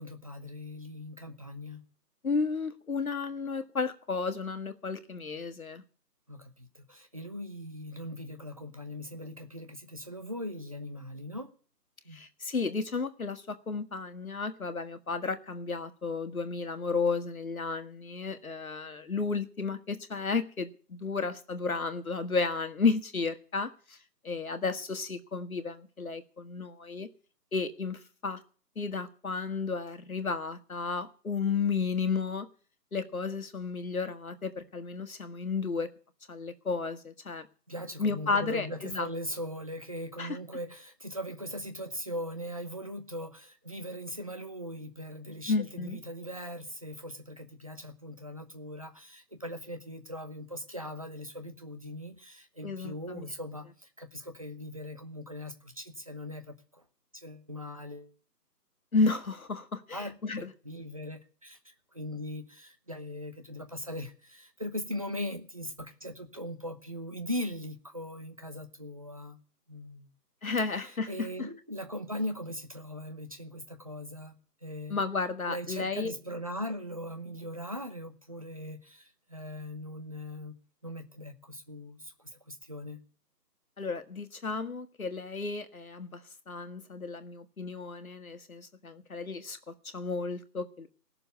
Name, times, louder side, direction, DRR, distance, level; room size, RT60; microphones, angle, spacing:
voice 1, 0.0-1.8 6.3-11.5 12.0-12.2 37.7-56.8 57.1-58.1 59.9-69.4 69.7-70.1 71.1-74.4 74.6-75.0 75.5-80.5 80.8-83.0, equal, 20° right, 7 dB, 0.9 m, -40 dB
voice 2, 2.2-5.8 12.1-24.0 24.2-27.1 27.5-28.4 28.8-32.5 32.9-35.9 36.3-37.5 38.0-39.1 40.2-40.4 45.5-46.0 52.6-53.2 58.9-60.5 70.4-71.3 74.9-76.1 83.8-86.2 86.5-90.9, left 4 dB, 60° left, 9 dB, 1.8 m, -33 dB
16.0 x 6.9 x 9.7 m, 0.42 s
figure-of-eight pair, 165°, 48 cm